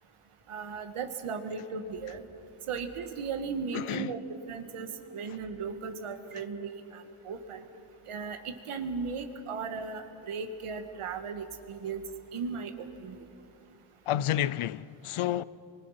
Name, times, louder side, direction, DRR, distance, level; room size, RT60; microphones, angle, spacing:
voice 1, 0.5-2.2 2.7-4.2 4.5-7.6 8.1-12.0 12.3-13.3, right 5 dB, 85° right, 1.7 m, -36 dB
voice 2, 3.7-4.1 14.1-15.4, left 12 dB, 80° left, 0.6 m, -30 dB
27.0 x 23.5 x 5.8 m
wide cardioid pair, 115°, 50 cm